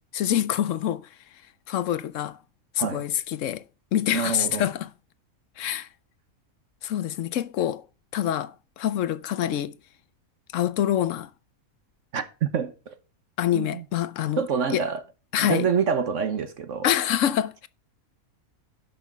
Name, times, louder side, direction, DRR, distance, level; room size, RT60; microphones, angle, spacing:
voice 1, 0.1-1.0 1.7-2.4 2.7-3.6 3.9-4.9 5.6-5.9 6.8-7.8 8.1-9.7 10.5-11.3 13.4-14.4 14.7-14.8 15.3-15.7 16.8-17.7, left 11 dB, 65° left, 1.0 m, -26 dB
voice 2, 4.1-4.6 12.1-12.9 13.5-13.8 14.4-15.0 15.4-16.9, right 6 dB, 60° right, 1.3 m, -27 dB
11.0 x 6.1 x 5.5 m
omnidirectional pair, 1.5 m